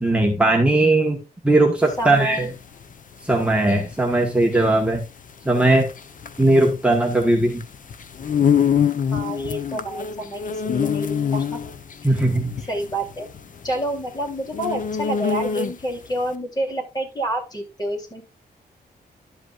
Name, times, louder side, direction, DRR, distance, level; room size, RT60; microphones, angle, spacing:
voice 1, 0.0-2.5 3.2-5.0 5.4-5.9 6.4-7.6 12.0-12.6, right 2 dB, 5° right, 1.3 m, -18 dB
sound 1, 1.8-16.0, left 7 dB, 55° left, 0.9 m, -26 dB
voice 2, 2.0-2.5 9.1-11.6 12.0-12.2 12.7-13.3 13.6-18.2, right 1 dB, 25° left, 3.5 m, -28 dB
12.0 x 8.0 x 2.5 m
wide cardioid pair, 155°, 16 cm